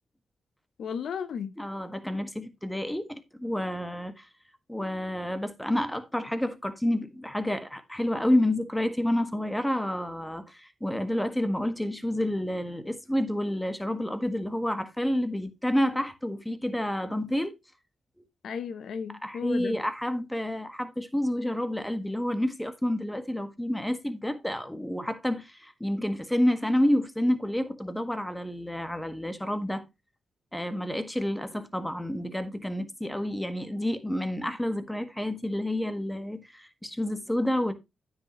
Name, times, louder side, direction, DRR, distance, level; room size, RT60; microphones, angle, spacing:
voice 1, 0.8-1.5 18.4-19.8, left 7 dB, 75° left, 0.7 m, -34 dB
voice 2, 1.6-4.3 4.7-17.5 19.2-29.8 30.5-37.7, left 1 dB, 5° left, 1.6 m, -29 dB
9.5 x 8.6 x 3.0 m
cardioid pair, 70°, 0 cm